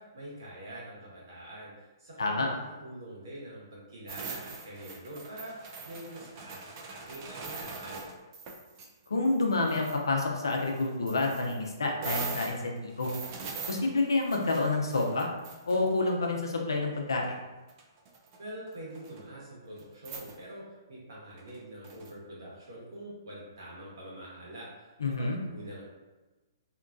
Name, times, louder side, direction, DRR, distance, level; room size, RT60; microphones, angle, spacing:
voice 1, 0.0-8.0 18.4-25.8, right 1 dB, 70° right, -6 dB, 1.3 m, -45 dB
sound 1, 4.1-8.9 9.2-10.0 10.5-16.3 17.2-17.3 17.7-18.4 18.7-19.2 19.8-19.9 20.0-20.4 21.4-22.1, right 4 dB, 40° right, 0.4 m, -42 dB
voice 2, 9.1-13.1 13.7-15.3 15.7-17.4 25.0-25.4, left 3 dB, 85° left, 1 dB, 0.6 m, -28 dB
2.8 x 2.2 x 2.5 m, 1.1 s
hypercardioid pair, 135°, 2 cm